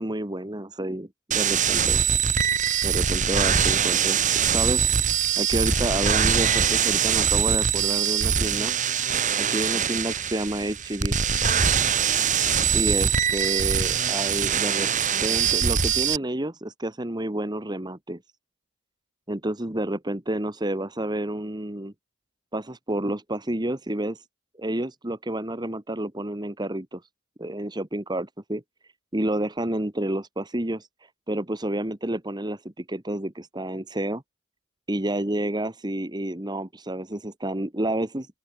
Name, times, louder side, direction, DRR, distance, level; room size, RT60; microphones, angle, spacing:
voice 1, 0.0-2.0 2.8-4.9 5.4-8.7 9.4-11.2 12.7-14.9 15.2-18.2 19.3-21.9 22.5-24.2 24.6-27.0 27.4-28.6 29.1-30.9 31.3-34.2 34.9-38.3, right 1 dB, 20° right, 1.5 m, -29 dB
sound 1, 1.3-16.2, right 7 dB, 35° right, 2.1 m, -23 dB
open air
head